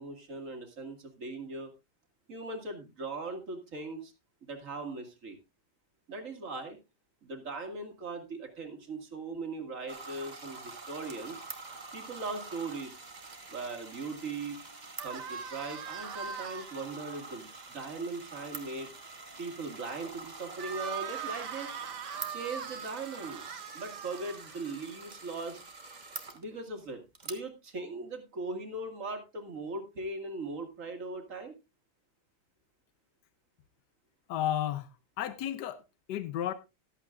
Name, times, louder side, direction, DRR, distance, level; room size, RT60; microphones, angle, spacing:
voice 1, 0.0-1.7 2.3-4.1 4.4-5.4 6.1-6.8 7.2-11.4 11.9-13.0 13.5-14.6 15.0-18.9 19.4-21.7 22.3-23.4 23.7-25.6 26.3-31.5, right 3 dB, 50° right, 2.4 m, -39 dB
sound 1, 9.9-26.4 27.1-27.3, right 3 dB, 30° right, 1.3 m, -46 dB
sound 2, 15.0-16.8 20.5-24.9, right 7 dB, 85° right, 1.7 m, -41 dB
voice 2, 34.3-34.9 35.2-35.8 36.1-36.5, left 11 dB, 85° left, 1.3 m, -32 dB
14.0 x 12.5 x 2.4 m
omnidirectional pair, 1.8 m